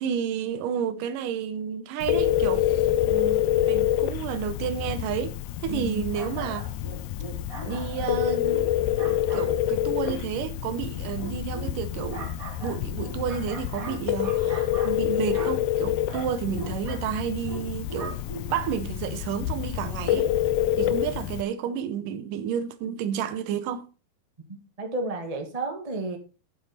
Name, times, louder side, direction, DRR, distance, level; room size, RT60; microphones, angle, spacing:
voice 1, 0.0-2.7 3.1-5.4 5.6-6.7 7.7-8.6 9.3-12.3 12.6-18.2 18.5-20.3 20.8-23.9, right 8 dB, 75° right, 2.2 m, -31 dB
Telephone, 2.0-21.4, left 13 dB, 80° left, 1.8 m, -27 dB
voice 2, 5.7-6.1 24.5-26.2, right 2 dB, 60° right, 0.4 m, -32 dB
sound 1, 6.1-18.7, right 3 dB, 30° right, 2.1 m, -41 dB
9.6 x 7.5 x 4.2 m
omnidirectional pair, 4.1 m